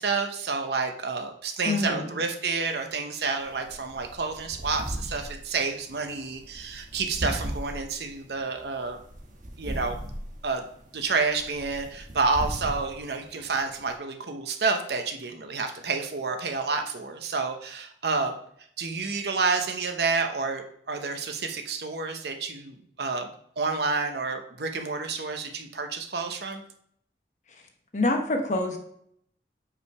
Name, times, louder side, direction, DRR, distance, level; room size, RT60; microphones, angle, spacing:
voice 1, 0.0-9.0 9.6-10.0 10.4-10.6 10.9-18.3 18.8-23.3 23.6-26.6, right 4 dB, 65° right, 5 dB, 0.8 m, -29 dB
voice 2, 1.6-2.1 27.9-28.8, left 2 dB, 40° left, 3 dB, 1.1 m, -26 dB
sound 1, 3.4-13.9, right 1 dB, 45° right, 1.4 m, -38 dB
5.6 x 4.9 x 4.7 m, 0.66 s
head